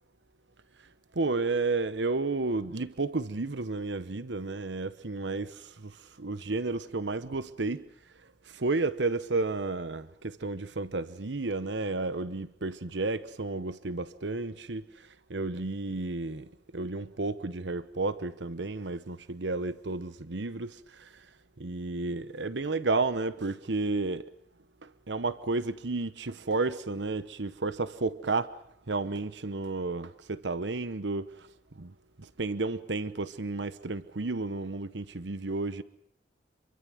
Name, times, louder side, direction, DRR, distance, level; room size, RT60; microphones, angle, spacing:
voice 1, 1.1-7.8 8.5-21.3 21.6-24.2 24.8-28.5 28.9-31.5 31.8-31.9 32.2-35.8, right 3 dB, 85° right, 1.0 m, -32 dB
27.5 x 23.5 x 6.2 m
head